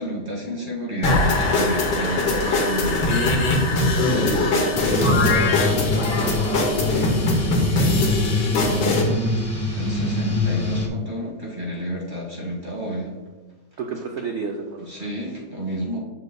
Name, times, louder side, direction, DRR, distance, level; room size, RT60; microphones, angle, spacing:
voice 1, 0.0-3.2 8.6-9.1 9.7-13.1 14.8-16.0, right 1 dB, 30° right, -3 dB, 1.7 m, -30 dB
sound 1, 1.0-9.0, left 2 dB, 80° left, 1.7 m, -21 dB
voice 2, 4.1-6.1 13.8-14.9, right 5 dB, 75° right, 2 dB, 0.6 m, -31 dB
sound 2, 4.8-10.9, left 1 dB, 25° left, 0.5 m, -24 dB
7.7 x 6.4 x 2.3 m, 1.2 s
omnidirectional pair, 1.8 m